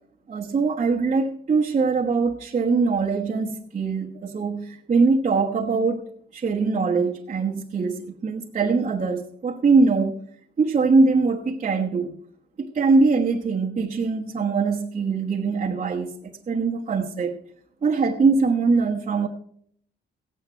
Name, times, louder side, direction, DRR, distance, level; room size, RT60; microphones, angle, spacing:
voice 1, 0.3-6.0 6.3-10.2 10.6-12.1 12.6-17.4 17.8-19.3, right 4 dB, 35° right, 1.3 m, -22 dB
16.0 x 9.0 x 4.5 m
cardioid pair, 90°, 20 cm